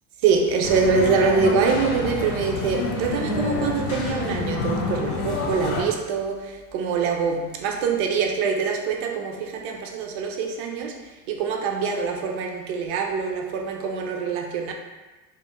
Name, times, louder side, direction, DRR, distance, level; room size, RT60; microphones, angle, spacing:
voice 1, 0.2-14.7, right 5 dB, 45° right, 0.4 m, -24 dB
sound 1, 0.6-5.8, left 3 dB, 65° left, 0.6 m, -28 dB
2.3 x 2.2 x 2.8 m
figure-of-eight pair, 70°, 45 cm